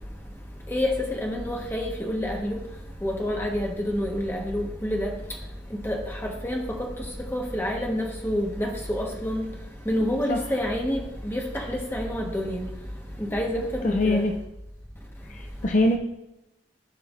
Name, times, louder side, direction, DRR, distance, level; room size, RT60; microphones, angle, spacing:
voice 1, 0.7-2.6 3.0-5.1 5.8-6.9 7.3-9.4 9.8-12.6 13.2-14.2, left 1 dB, 15° left, 1.3 m, -28 dB
voice 2, 13.8-14.3 15.3-16.0, left 1 dB, 45° left, 0.6 m, -23 dB
14.5 x 5.6 x 2.6 m
head